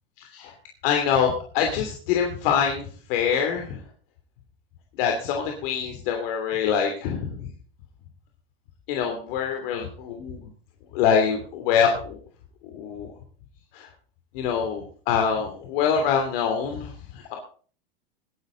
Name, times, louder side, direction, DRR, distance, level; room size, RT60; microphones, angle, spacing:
voice 1, 0.2-0.5 0.8-2.8 3.1-3.8 5.0-7.3 8.9-10.5 10.9-12.2 12.7-13.1 13.7-13.9 14.3-17.3, left 7 dB, 65° left, 3 dB, 3.0 m, -25 dB
19.5 x 10.5 x 3.9 m, 0.42 s
hypercardioid pair, 115°, 30 cm